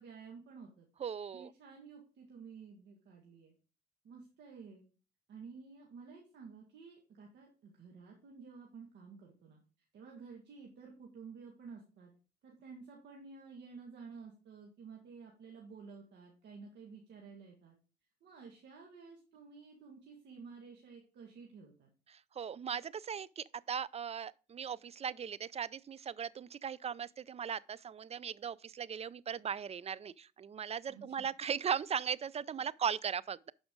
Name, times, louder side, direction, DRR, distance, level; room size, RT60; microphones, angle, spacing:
voice 1, 0.0-0.9 1.3-3.5 4.0-4.8 5.3-9.6 9.9-12.1 12.4-17.8 18.2-21.9 30.9-31.3, right 5 dB, 70° right, 1.9 m, -52 dB
voice 2, 1.0-1.5 22.1-33.5, right 7 dB, 35° right, 0.4 m, -38 dB
11.5 x 5.0 x 3.8 m
supercardioid pair, 75°, 19 cm